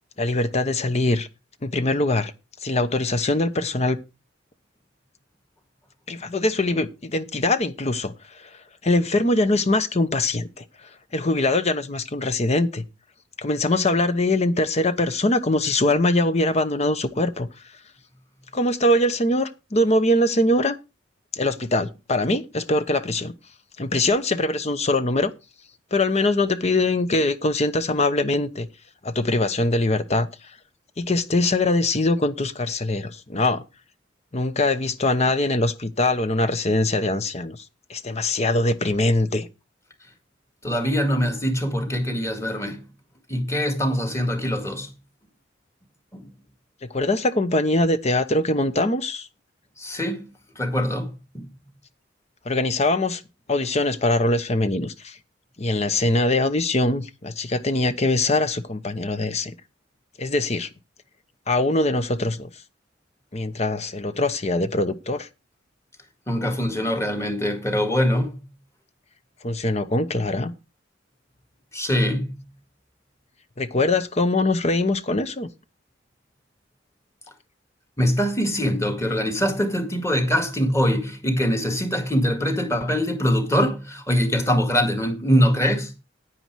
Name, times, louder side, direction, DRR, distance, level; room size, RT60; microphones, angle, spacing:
voice 1, 0.2-1.3 1.6-2.3 2.6-4.0 6.1-8.5 8.8-10.6 11.1-12.8 13.4-17.5 18.5-20.8 21.3-23.3 23.8-25.3 25.9-28.7 29.0-30.3 31.0-33.6 34.3-37.6 37.9-39.5 46.9-49.3 52.4-53.2 53.5-55.2 55.6-59.6 60.2-60.7 61.5-62.5 63.3-65.3 69.4-70.5 73.6-75.5, left 2 dB, 35° left, 0.9 m, -22 dB
voice 2, 40.6-42.8 43.3-44.9 46.1-46.3 49.8-50.3 50.6-51.5 66.3-68.4 71.7-72.4 78.0-85.9, equal, 15° left, 2.0 m, -23 dB
9.7 x 9.5 x 4.7 m
head